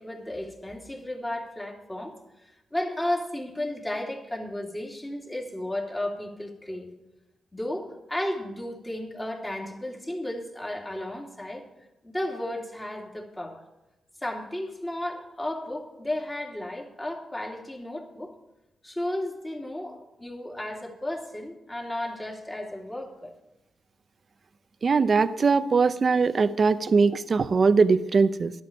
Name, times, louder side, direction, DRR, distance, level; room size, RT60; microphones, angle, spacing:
voice 1, 0.0-2.2 2.7-6.9 7.5-11.7 12.0-13.6 14.2-18.3 18.8-23.3, left 1 dB, 15° left, 0 dB, 3.0 m, -33 dB
voice 2, 24.8-28.5, right 4 dB, 45° right, 13 dB, 0.7 m, -21 dB
12.5 x 11.5 x 5.3 m, 0.98 s
cardioid pair, 75°, 0 cm